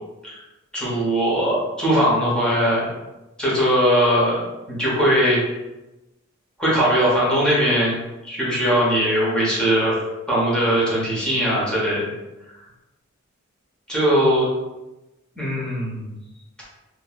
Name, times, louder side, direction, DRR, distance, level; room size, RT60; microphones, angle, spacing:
voice 1, 0.7-2.9 3.4-5.4 6.6-8.0 8.2-10.0 10.3-12.0 13.9-14.4 15.4-16.1, equal, 5° left, -7 dB, 0.9 m, -20 dB
3.0 x 2.7 x 2.3 m, 1.0 s
head